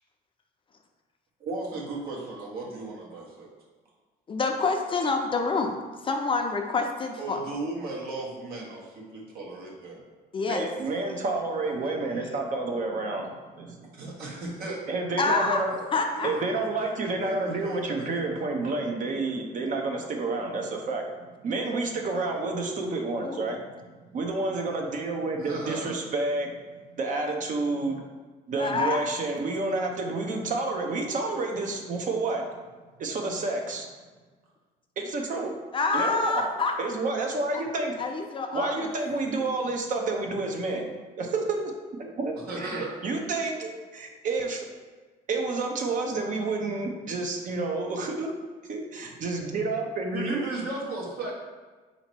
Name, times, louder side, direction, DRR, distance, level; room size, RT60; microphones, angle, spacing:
voice 1, 1.4-3.5 7.2-10.0 10.7-11.2 13.9-14.8 15.7-15.8 16.1-18.2 25.4-25.9 42.5-42.9 50.1-51.3, right 2 dB, 65° right, -3 dB, 1.3 m, -36 dB
voice 2, 4.3-5.8 6.0-7.4 10.3-10.7 15.2-15.6 15.9-16.3 23.2-23.4 28.6-29.0 35.7-36.9 38.0-38.9, left 4 dB, 30° left, 3 dB, 0.5 m, -27 dB
voice 3, 10.5-13.9 14.9-15.7 16.2-21.0 21.4-26.5 27.0-28.0 28.5-32.4 33.0-33.9 35.0-35.5 35.9-36.5 36.8-37.9 38.5-41.7 42.0-44.7 45.3-48.3 48.7-50.4, right 3 dB, 50° right, 2 dB, 0.8 m, -29 dB
4.0 x 2.9 x 4.5 m, 1.4 s
cardioid pair, 110°, 17 cm